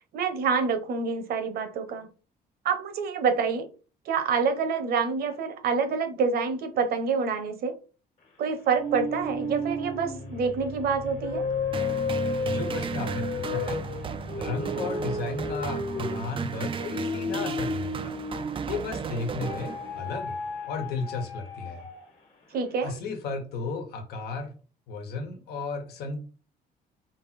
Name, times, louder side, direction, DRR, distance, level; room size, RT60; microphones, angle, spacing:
voice 1, 0.1-2.1 2.6-3.7 4.1-7.7 8.4-11.4 22.5-22.9, right 5 dB, 65° right, 1.0 m, -27 dB
sound 1, 8.7-18.9 19.4-22.2, left 2 dB, 45° left, 1.4 m, -33 dB
sound 2, 11.7-20.2, right 6 dB, 30° right, 0.4 m, -35 dB
voice 2, 12.4-13.8 14.4-18.2 18.7-20.4 20.6-21.9 22.8-24.5 24.9-26.2, left 4 dB, 70° left, 1.3 m, -34 dB
3.5 x 2.9 x 4.2 m
cardioid pair, 110°, 17 cm